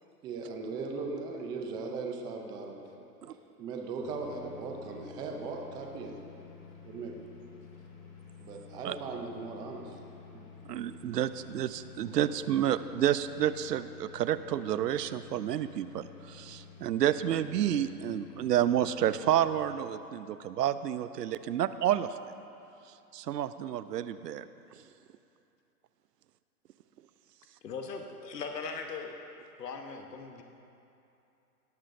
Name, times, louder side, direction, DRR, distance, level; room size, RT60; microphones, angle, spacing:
voice 1, 0.2-3.0 3.6-6.2 6.8-7.2 8.4-10.0 10.3-10.4 12.5-12.6, right 4 dB, 10° right, 2 dB, 0.4 m, -38 dB
sound 1, 4.0-19.6, left 6 dB, 30° left, 3.2 m, -51 dB
voice 2, 10.7-22.2 23.1-24.5, right 11 dB, 85° right, 13 dB, 0.7 m, -30 dB
voice 3, 27.6-29.2 29.6-30.4, left 5 dB, 90° left, 4 dB, 1.2 m, -39 dB
17.5 x 13.0 x 2.6 m, 2.7 s
hypercardioid pair, 130°, 47 cm